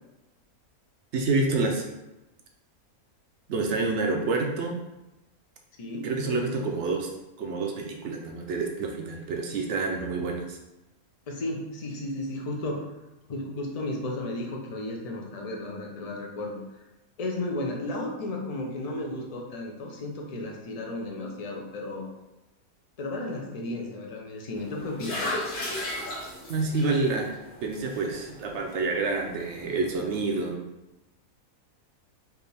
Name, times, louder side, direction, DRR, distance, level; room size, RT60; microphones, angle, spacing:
voice 1, 1.1-1.8 3.5-4.8 6.0-7.1 7.4-10.6 26.5-27.4 27.6-30.7, right 3 dB, 65° right, 2 dB, 0.8 m, -28 dB
voice 2, 5.8-6.6 11.3-12.9 13.3-16.6 17.2-22.1 23.0-25.2, left 2 dB, 55° left, 0 dB, 0.4 m, -34 dB
sound 1, 24.6-30.2, left 1 dB, 90° left, 1.7 m, -37 dB
4.8 x 2.5 x 3.3 m, 0.96 s
omnidirectional pair, 1.6 m